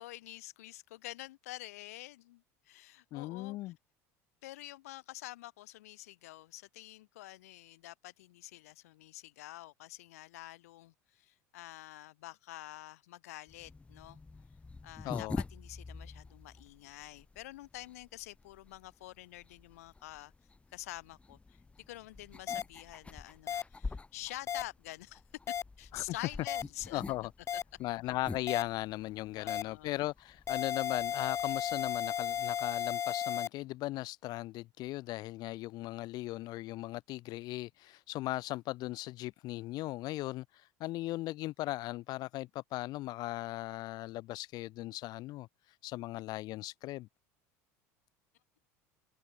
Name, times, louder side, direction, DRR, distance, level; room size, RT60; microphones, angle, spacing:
voice 1, 0.0-3.7 4.4-14.2 14.8-20.3 20.7-21.6 21.9-25.2 25.8-27.0 27.5-27.6 29.4-30.0, left 17 dB, 80° left, 7.8 m, -47 dB
voice 2, 3.1-3.7 15.0-15.4 25.9-26.0 26.9-27.3 27.8-47.1, left 17 dB, 55° left, 1.3 m, -38 dB
sound 1, 13.5-32.9, left 3 dB, 15° left, 1.1 m, -48 dB
sound 2, 22.5-22.6 23.5-23.6 24.5-24.6 25.5-25.6 26.5-26.6 27.5-27.6 28.5-28.6 29.5-29.6 30.5-33.5, left 9 dB, 35° left, 0.9 m, -34 dB
hypercardioid pair, 90°, 8 cm